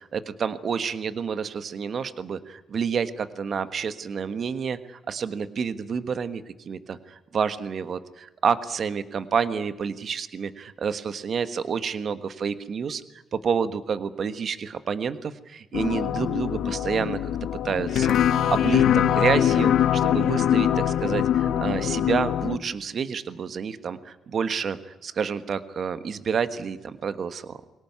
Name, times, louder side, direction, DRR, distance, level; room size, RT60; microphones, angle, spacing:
voice 1, 0.1-13.0 13.3-17.2 17.6-27.6, right 6 dB, 50° right, 12 dB, 1.4 m, -29 dB
sound 1, 15.7-22.6, left 10 dB, 75° left, 1.1 m, -23 dB
23.0 x 18.0 x 9.5 m, 1.1 s
cardioid pair, 90°, 0 cm